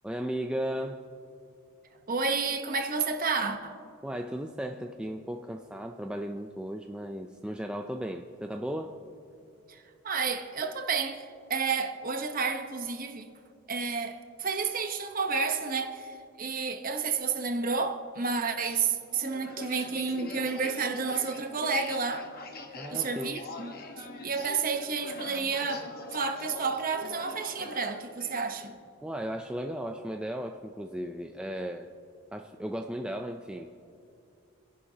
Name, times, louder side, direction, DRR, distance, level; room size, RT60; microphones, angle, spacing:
voice 1, 0.0-1.1 4.0-9.0 22.8-23.4 29.0-31.9 32.3-33.8, equal, 5° right, 0.3 m, -35 dB
voice 2, 2.1-3.8 9.7-13.3 13.7-22.3 22.9-28.7, right 5 dB, 40° right, 0.9 m, -31 dB
sound 1, 18.6-28.5, left 3 dB, 45° left, 1.1 m, -43 dB
30.0 x 11.0 x 2.8 m
head